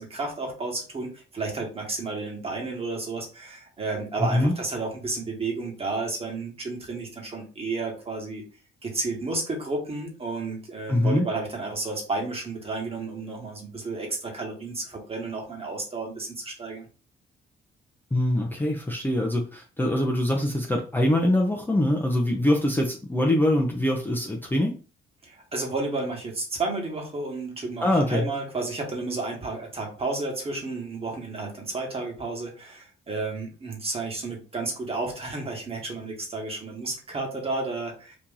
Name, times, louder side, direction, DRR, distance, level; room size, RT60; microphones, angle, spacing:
voice 1, 0.0-8.4 8.8-16.9 25.2-38.2, right 3 dB, 30° right, 0 dB, 1.5 m, -32 dB
voice 2, 4.2-4.5 10.9-11.3 18.1-24.7 27.8-28.2, left 1 dB, 10° left, -1 dB, 0.7 m, -23 dB
3.0 x 2.6 x 3.7 m, 0.36 s
cardioid pair, 90°, 20 cm